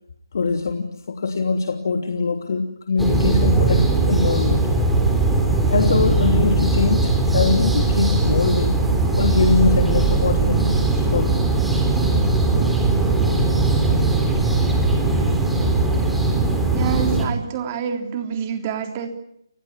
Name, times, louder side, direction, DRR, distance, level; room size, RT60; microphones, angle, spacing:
voice 1, 0.3-4.7 5.7-8.8 9.2-11.3 13.8-14.0, left 4 dB, 50° left, 5 dB, 3.0 m, -22 dB
sound 1, 3.0-17.3, right 3 dB, ahead, 3.5 m, -19 dB
voice 2, 16.7-19.1, right 7 dB, 25° right, 6 dB, 3.5 m, -26 dB
29.5 x 21.0 x 9.6 m, 0.77 s
figure-of-eight pair, 155°, 2 cm